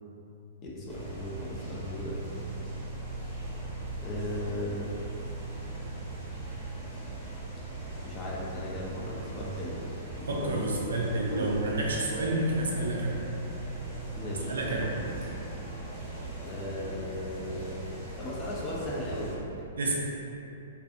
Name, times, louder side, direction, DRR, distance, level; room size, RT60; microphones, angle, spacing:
voice 1, 0.6-2.2 4.0-4.9 8.0-9.8 10.2-10.8 11.1-11.5 14.1-14.9 16.4-17.8 18.2-19.4, left 1 dB, 30° left, -5 dB, 0.6 m, -36 dB
sound 1, 0.9-19.4, right 2 dB, 20° right, 1.0 m, -39 dB
voice 2, 10.3-13.2 14.5-15.0 19.8-20.0, right 2 dB, 75° right, -3 dB, 0.4 m, -29 dB
2.5 x 2.3 x 2.6 m, 2.9 s
hypercardioid pair, 115°, 0 cm